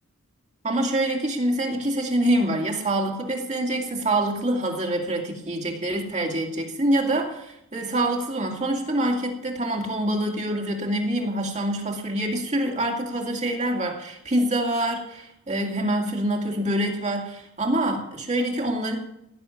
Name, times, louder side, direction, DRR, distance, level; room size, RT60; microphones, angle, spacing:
voice 1, 0.6-19.0, right 1 dB, 35° right, 1 dB, 2.4 m, -25 dB
16.5 x 7.0 x 9.6 m, 0.79 s
head